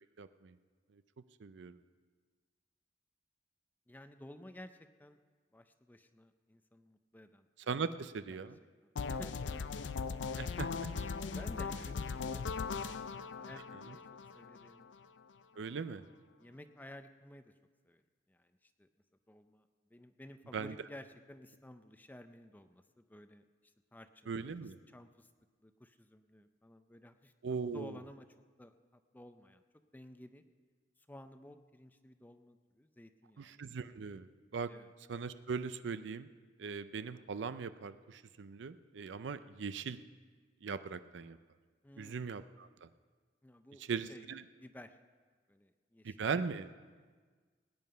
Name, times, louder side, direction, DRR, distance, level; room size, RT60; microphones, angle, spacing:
voice 1, 0.2-0.6 1.4-1.8 7.7-8.6 10.4-10.9 15.6-16.0 20.5-20.8 24.3-24.8 27.4-28.0 33.4-34.7 35.1-36.3 36.6-40.0 40.6-41.4 42.0-42.9 43.9-44.4 46.0-46.7, right 5 dB, 75° right, 13 dB, 0.5 m, -39 dB
voice 2, 3.9-5.2 5.5-7.5 8.3-8.5 8.8-9.7 11.3-14.0 14.3-14.9 16.0-17.5 17.8-18.0 18.3-18.9 19.3-25.3 25.6-27.3 27.7-28.8 29.1-29.6 29.9-30.4 31.1-33.7 34.7-34.9 41.8-42.2 43.4-44.2 44.6-45.0 45.5-46.2, left 1 dB, 10° left, 9 dB, 0.5 m, -54 dB
sound 1, 9.0-14.9, left 5 dB, 80° left, 0.5 m, -39 dB
18.5 x 9.4 x 5.6 m, 1.5 s
head